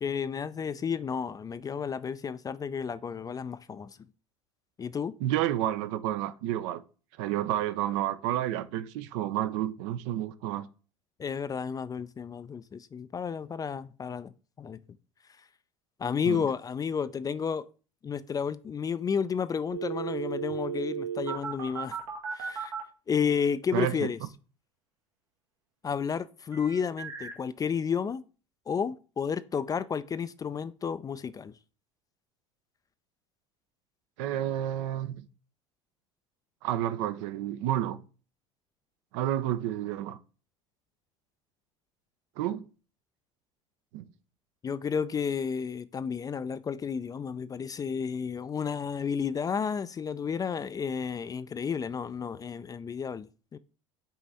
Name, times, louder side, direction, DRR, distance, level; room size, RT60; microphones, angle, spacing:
voice 1, 0.0-4.0 4.8-5.1 11.2-14.3 14.6-14.8 16.0-17.6 18.0-22.0 22.3-22.7 23.1-24.2 25.8-28.2 28.7-31.5 44.6-53.6, left 6 dB, 20° left, 0.3 m, -32 dB
voice 2, 5.2-6.8 7.2-10.7 16.3-16.4 23.7-24.1 34.2-35.2 36.6-38.0 39.1-40.2 42.4-42.6 43.9-44.1, right 12 dB, 65° right, 0.5 m, -30 dB
sound 1, 19.7-22.8 26.5-27.3, right 8 dB, 80° right, 1.3 m, -35 dB
5.6 x 4.0 x 4.2 m
hypercardioid pair, 70°, 17 cm